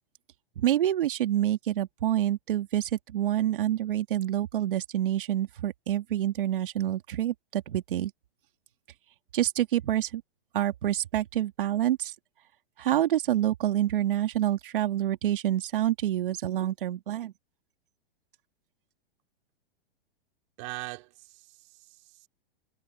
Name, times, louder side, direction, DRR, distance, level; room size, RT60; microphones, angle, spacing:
voice 1, 0.6-8.1 9.3-10.2 10.5-12.1 12.8-17.3, right 12 dB, 60° right, 2.8 m, -27 dB
voice 2, 20.6-22.3, right 25 dB, 30° right, 3.1 m, -42 dB
hypercardioid pair, 175°, 31 cm